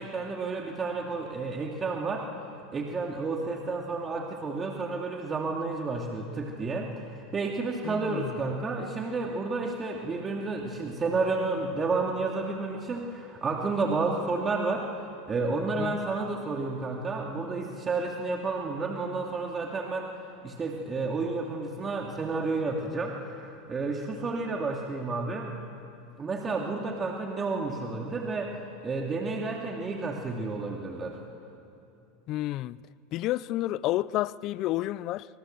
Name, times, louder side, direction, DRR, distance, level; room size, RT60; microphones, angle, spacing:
voice 1, 0.0-2.3 2.7-14.9 15.3-20.1 20.4-25.5 26.2-28.5 28.8-31.2, right 3 dB, 25° right, 2.6 m, -31 dB
voice 2, 7.8-8.3 15.8-16.0 32.3-32.8 33.1-35.3, left 15 dB, 50° left, 0.5 m, -30 dB
26.0 x 24.5 x 7.9 m
hypercardioid pair, 105°, 0 cm